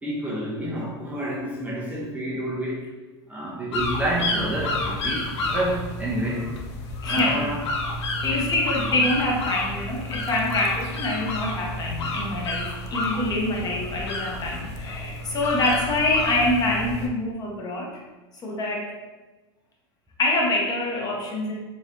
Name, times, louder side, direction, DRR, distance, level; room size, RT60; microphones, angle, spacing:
voice 1, 0.0-2.9 3.3-6.5 7.1-7.6, right 1 dB, 10° right, -6 dB, 0.5 m, -29 dB
sound 1, 3.7-17.1, left 2 dB, 85° left, 0.5 m, -30 dB
voice 2, 7.0-7.5 8.2-17.9 18.4-18.9 20.2-21.5, left 2 dB, 25° left, -1 dB, 0.7 m, -25 dB
3.1 x 2.4 x 2.7 m, 1.2 s
hypercardioid pair, 110°, 14 cm